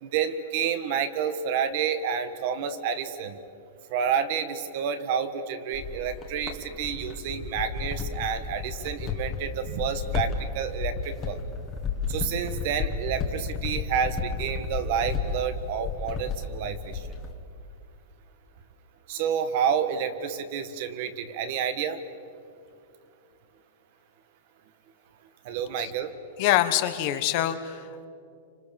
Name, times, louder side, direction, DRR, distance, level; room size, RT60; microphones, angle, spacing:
voice 1, 0.0-3.4 3.9-11.4 12.1-17.0 19.1-22.0 25.4-26.1, right 7 dB, 40° right, 10 dB, 1.5 m, -29 dB
sound 1, 5.7-17.3, left 5 dB, 15° left, 1.8 m, -33 dB
voice 2, 26.4-28.1, left 13 dB, 35° left, 9 dB, 1.2 m, -25 dB
28.5 x 26.5 x 7.1 m, 2.4 s
supercardioid pair, 175°, 0 cm